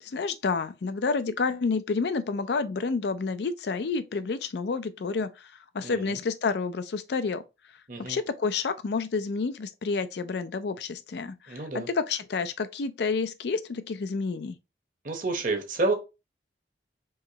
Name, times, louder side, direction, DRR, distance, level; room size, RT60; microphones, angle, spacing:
voice 1, 0.0-7.4 8.0-14.6, left 4 dB, 70° left, 0.4 m, -29 dB
voice 2, 5.8-6.2 7.9-8.2 11.5-11.9 15.0-15.9, right 3 dB, 50° right, 0.9 m, -29 dB
4.7 x 3.0 x 2.8 m
head